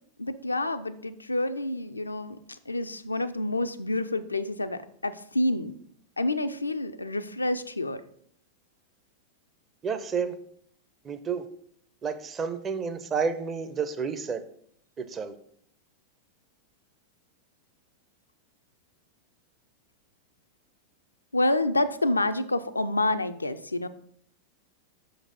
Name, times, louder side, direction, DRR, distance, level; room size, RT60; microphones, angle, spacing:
voice 1, 0.2-5.7 6.2-8.0 21.3-23.9, left 1 dB, 80° left, 0.4 m, -28 dB
voice 2, 9.8-10.4 11.0-11.5 12.0-14.4 15.0-15.3, right 5 dB, 25° right, 0.6 m, -30 dB
6.2 x 4.0 x 5.2 m
figure-of-eight pair, 90°, 0 cm